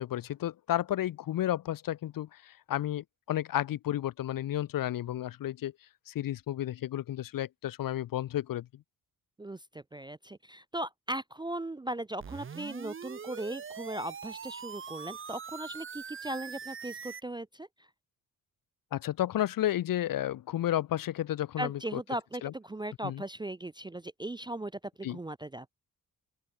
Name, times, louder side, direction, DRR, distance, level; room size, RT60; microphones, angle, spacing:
voice 1, 0.0-5.7 6.1-8.7 18.9-22.0 22.4-22.5 23.0-23.2 25.0-25.2, left 12 dB, 60° left, 0.7 m, -32 dB
voice 2, 9.4-17.7 21.6-25.7, right 1 dB, 10° right, 0.4 m, -38 dB
sound 1, 12.2-17.2, right 6 dB, 35° right, 1.3 m, -42 dB
open air
wide cardioid pair, 155°, 37 cm